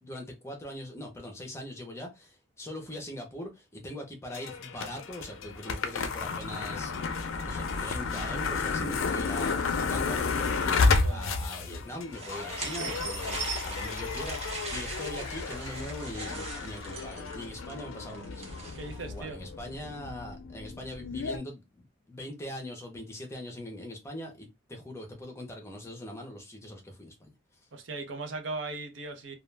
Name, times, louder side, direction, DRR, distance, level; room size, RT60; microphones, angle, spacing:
voice 1, 0.0-27.3, left 1 dB, 15° left, 0.6 m, -42 dB
sound 1, 4.3-21.4, left 4 dB, 90° left, 0.5 m, -32 dB
sound 2, 12.1-19.0, right 3 dB, 30° right, 0.7 m, -40 dB
voice 2, 18.7-19.4 27.7-29.4, right 3 dB, 70° right, 0.6 m, -38 dB
2.3 x 2.2 x 3.1 m
head